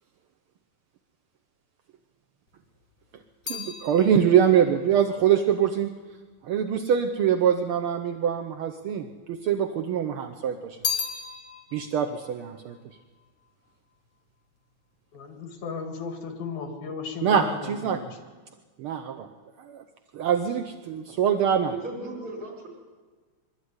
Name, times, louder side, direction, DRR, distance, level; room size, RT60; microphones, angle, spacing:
sound 1, 2.5-6.9 7.7-8.5 8.8-9.9 10.2-13.8 14.1-14.6, left 6 dB, 50° left, 3.4 m, -37 dB
voice 1, 3.5-5.9 6.4-10.8 11.7-12.8 17.2-18.0 18.8-19.3 19.6-19.8 20.1-21.7, right 8 dB, 75° right, 6 dB, 1.2 m, -24 dB
voice 2, 15.1-18.1, left 5 dB, 75° left, 5 dB, 3.6 m, -35 dB
voice 3, 21.7-22.7, right 2 dB, 45° right, -2 dB, 5.8 m, -36 dB
22.0 x 13.0 x 9.6 m, 1.4 s
omnidirectional pair, 3.5 m